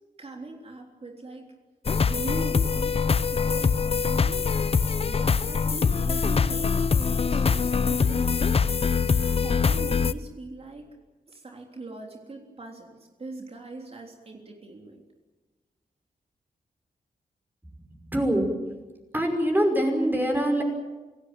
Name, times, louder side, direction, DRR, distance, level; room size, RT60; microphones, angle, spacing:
voice 1, 0.2-1.5 2.0-4.5 5.1-8.6 9.3-10.9 11.3-15.0, right 2 dB, 40° right, 2 dB, 3.4 m, -40 dB
sound 1, 1.8-10.1, left 5 dB, 40° left, 0.7 m, -23 dB
voice 2, 18.1-18.5 19.1-20.6, right 1 dB, 10° right, 2 dB, 5.7 m, -23 dB
27.0 x 17.5 x 9.1 m, 1.2 s
wide cardioid pair, 125°, 16 cm